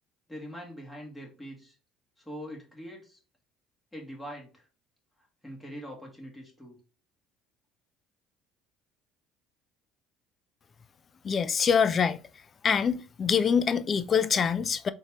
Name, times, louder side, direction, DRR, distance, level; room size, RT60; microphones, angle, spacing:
voice 1, 0.3-1.8 2.2-3.2 3.9-4.7 5.4-6.8, equal, 10° left, 2.2 m, -43 dB
voice 2, 11.2-12.2 12.6-14.9, left 6 dB, 40° left, 0.4 m, -25 dB
3.9 x 3.7 x 3.1 m
supercardioid pair, 80°, 0 cm